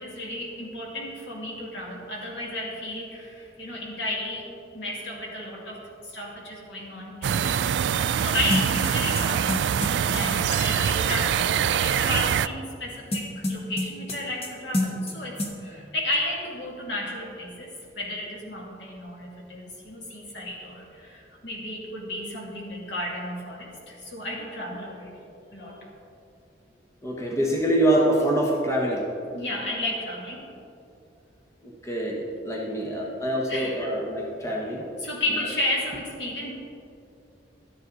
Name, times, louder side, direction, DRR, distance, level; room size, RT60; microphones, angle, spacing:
voice 1, 0.0-7.6 8.2-9.5 10.0-25.3 25.5-25.8 29.3-30.5 33.5-33.8 35.0-36.5, left 1 dB, 80° left, -3 dB, 2.6 m, -33 dB
sound 1, 7.2-12.5, right 8 dB, 80° right, 0.3 m, -24 dB
sound 2, 8.5-10.2 13.1-14.5 14.7-15.1 15.4-15.5, left 1 dB, 35° left, 1.2 m, -28 dB
voice 2, 27.0-29.0 31.6-34.8 35.3-35.4, right 1 dB, 15° left, -2 dB, 1.2 m, -25 dB
12.5 x 9.8 x 4.0 m, 2.6 s
head